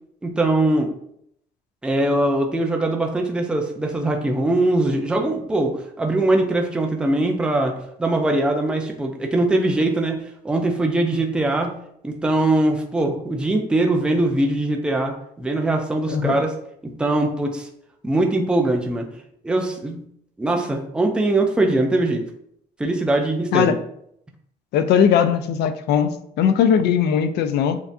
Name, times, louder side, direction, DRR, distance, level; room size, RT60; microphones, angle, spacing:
voice 1, 0.2-0.9 1.8-10.2 10.4-11.7 12.0-16.5 17.0-17.7 18.0-19.1 19.4-20.0 20.4-22.2 22.8-23.8, right 2 dB, 5° right, 2 dB, 0.4 m, -21 dB
voice 2, 16.1-16.4 23.5-23.8 24.7-27.8, left 8 dB, 80° left, 10 dB, 0.4 m, -19 dB
7.1 x 2.6 x 2.6 m, 0.72 s
cardioid pair, 180°, 17 cm